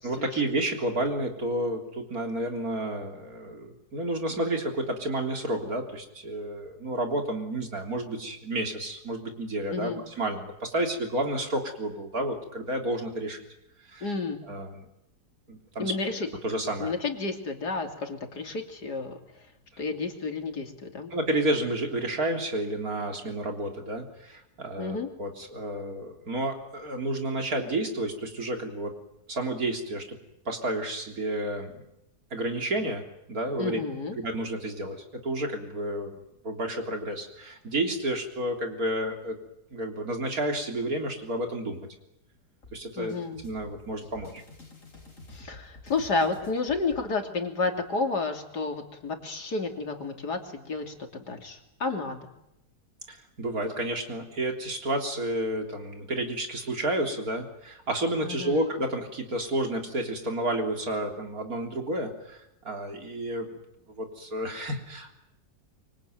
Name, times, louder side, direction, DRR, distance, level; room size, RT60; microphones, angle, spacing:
voice 1, 0.0-9.9 10.2-13.4 13.9-14.1 14.5-14.9 15.5-15.9 16.4-16.9 21.1-28.9 29.3-30.2 30.5-31.9 32.3-33.8 34.2-36.1 36.4-39.4 39.7-41.9 42.7-43.1 43.4-44.3 53.1-62.4 62.6-63.5 64.0-65.1, right 1 dB, 60° right, 4 dB, 3.9 m, -31 dB
voice 2, 9.7-10.0 14.0-14.4 15.8-16.3 16.8-19.2 19.8-21.1 24.8-25.1 33.6-34.2 43.0-43.4 45.3-52.3 58.2-58.7, left 3 dB, 75° left, 4 dB, 3.6 m, -31 dB
sound 1, 42.6-47.0, left 2 dB, 50° left, 5.9 m, -49 dB
25.5 x 24.0 x 9.3 m, 0.84 s
omnidirectional pair, 1.8 m